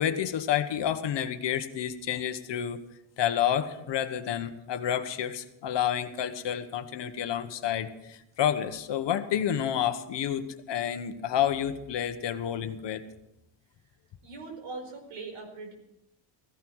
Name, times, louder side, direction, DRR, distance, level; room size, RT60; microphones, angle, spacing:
voice 1, 0.0-2.8 3.2-13.0, left 10 dB, 60° left, 9 dB, 1.2 m, -29 dB
voice 2, 14.2-15.7, right 3 dB, 85° right, 4 dB, 4.9 m, -41 dB
16.0 x 16.0 x 4.7 m, 0.85 s
cardioid pair, 175°, 49 cm